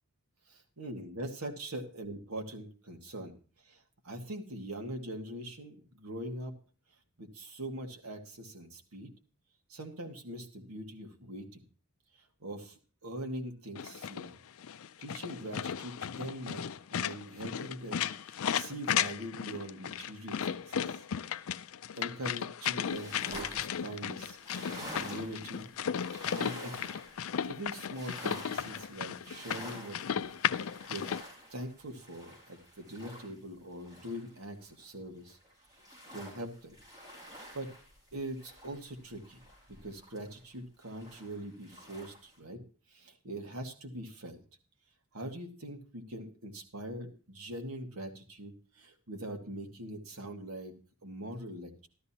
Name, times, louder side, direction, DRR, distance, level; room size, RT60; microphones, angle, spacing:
voice 1, 0.5-3.3 3.6-6.5 7.2-9.1 9.7-11.6 12.4-14.3 15.0-16.6 16.9-21.0 21.3-21.4 21.9-25.7 26.3-26.9 27.5-30.3 30.6-31.1 31.5-35.4 36.1-36.7 37.5-37.7 38.1-39.4 39.7-42.6 42.9-44.4 45.1-50.7 51.0-51.9, right 1 dB, 75° right, 2 dB, 1.9 m, -42 dB
sound 1, 13.8-31.2, left 8 dB, 65° left, 0.4 m, -35 dB
sound 2, 22.8-34.8 35.2-40.5 40.8-42.4, equal, 15° right, 5.1 m, -49 dB
13.0 x 12.5 x 2.9 m, 0.38 s
head